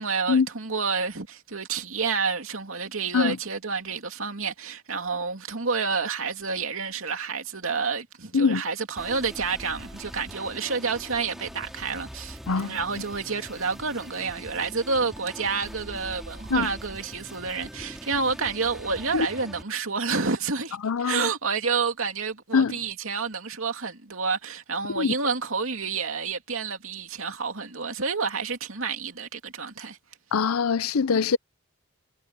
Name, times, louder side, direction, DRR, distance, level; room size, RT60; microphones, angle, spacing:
voice 1, 0.0-30.0, right 5 dB, 70° right, 2.8 m, -29 dB
sound 1, 9.0-19.6, equal, ahead, 4.2 m, -43 dB
voice 2, 12.5-12.8 16.5-16.7 19.1-19.3 20.8-21.3 22.5-22.7 25.0-25.1 30.3-31.4, left 5 dB, 85° left, 0.6 m, -23 dB
head